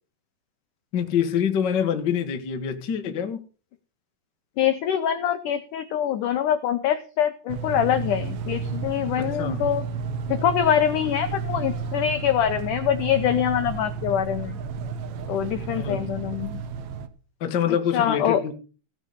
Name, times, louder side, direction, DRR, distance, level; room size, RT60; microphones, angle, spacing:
voice 1, 0.9-3.4 9.2-9.6 15.8-16.1 17.4-18.5, left 8 dB, 60° left, 1.1 m, -26 dB
voice 2, 4.6-9.9 10.3-14.6 15.3-16.6 17.7-18.4, left 9 dB, 80° left, 1.8 m, -24 dB
sound 1, 7.5-17.1, right 5 dB, 80° right, 1.6 m, -32 dB
16.5 x 6.1 x 6.6 m
omnidirectional pair, 4.8 m